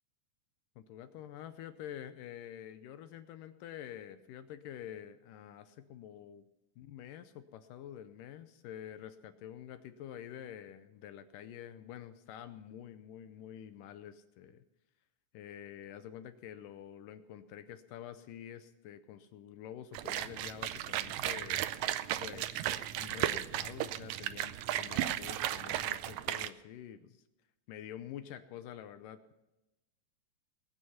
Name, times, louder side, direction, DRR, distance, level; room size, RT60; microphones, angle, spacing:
voice 1, 0.8-6.4 6.8-14.6 15.3-21.6 22.2-27.2 27.7-29.2, left 10 dB, 80° left, 10 dB, 2.2 m, -48 dB
sound 1, 19.9-26.5, right 12 dB, 85° right, 1.6 m, -35 dB
20.5 x 9.3 x 5.6 m, 0.97 s
omnidirectional pair, 4.0 m